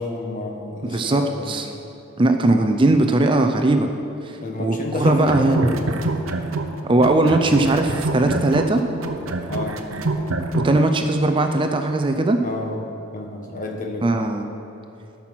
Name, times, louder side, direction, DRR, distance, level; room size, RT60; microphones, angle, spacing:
voice 1, 0.0-1.6 4.4-6.2 9.5-9.8 12.4-12.8 13.1-14.2, left 2 dB, 40° left, 2 dB, 1.2 m, -30 dB
voice 2, 0.9-1.7 2.2-3.9 4.6-5.7 6.8-8.8 10.6-12.4 14.0-14.5, right 2 dB, 25° right, 6 dB, 0.5 m, -19 dB
sound 1, 4.9-6.7 7.0-10.8, right 2 dB, 75° right, 0.8 m, -25 dB
13.0 x 5.9 x 5.9 m, 2.9 s
head